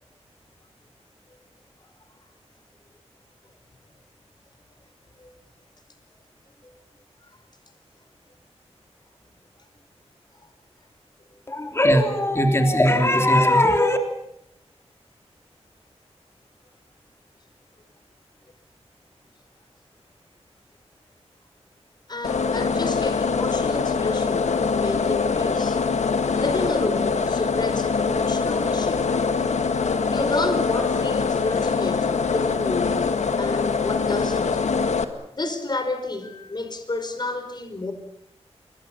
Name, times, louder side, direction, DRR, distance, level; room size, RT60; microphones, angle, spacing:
voice 1, 11.5-14.0, left 1 dB, 20° left, 5 dB, 3.4 m, -19 dB
voice 2, 22.1-25.8 26.4-29.0 30.1-33.1 33.4-34.6 35.3-37.9, left 2 dB, 40° left, 8 dB, 4.8 m, -30 dB
sound 1, 22.2-35.0, left 5 dB, 90° left, 1.9 m, -23 dB
28.5 x 23.0 x 7.1 m, 0.77 s
wide cardioid pair, 95°, 11 cm